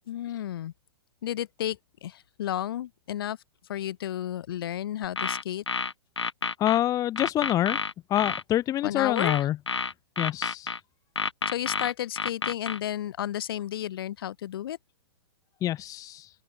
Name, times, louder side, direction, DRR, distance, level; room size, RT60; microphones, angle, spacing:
voice 1, 0.1-0.7 1.2-3.4 3.7-5.6 8.8-9.5 11.5-14.8, left 11 dB, 55° left, 3.4 m, -32 dB
sound 1, 5.0-6.8 7.2-8.4 9.2-10.8 11.2-12.8, left 4 dB, 80° left, 3.8 m, -30 dB
voice 2, 6.6-7.8 8.1-9.6 10.2-10.7 15.6-16.3, left 13 dB, 25° left, 1.3 m, -26 dB
open air
figure-of-eight pair, 110°, 14 cm